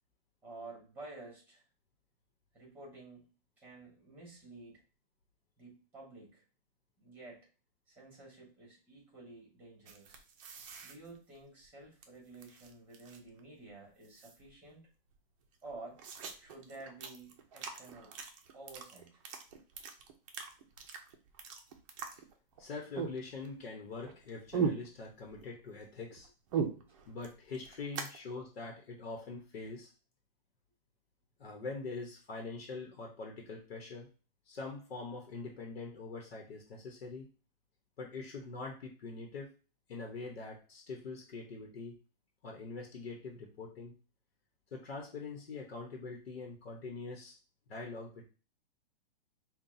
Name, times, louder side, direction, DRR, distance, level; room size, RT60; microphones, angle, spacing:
voice 1, 0.4-1.6 2.5-3.3 3.6-4.8 5.6-6.4 7.0-7.5 7.9-10.2 10.8-14.8 15.6-16.0 16.4-18.2 18.5-19.2 26.9-27.0, right 2 dB, 5° right, -1 dB, 1.5 m, -51 dB
sound 1, 9.9-12.0 12.3-13.4 13.7-13.8 14.0-14.7 15.1-15.2 15.4-22.6 22.9-23.7 24.0-25.5 25.8-28.2, right 6 dB, 35° right, 0.6 m, -40 dB
voice 2, 22.6-26.3 27.1-29.9 31.4-34.1 34.5-37.3 38.0-39.5 39.9-42.0 42.4-43.9 44.7-47.4 47.7-48.2, left 3 dB, 90° left, 1 dB, 1.0 m, -43 dB
5.5 x 2.3 x 2.7 m, 0.35 s
hypercardioid pair, 155°, 30 cm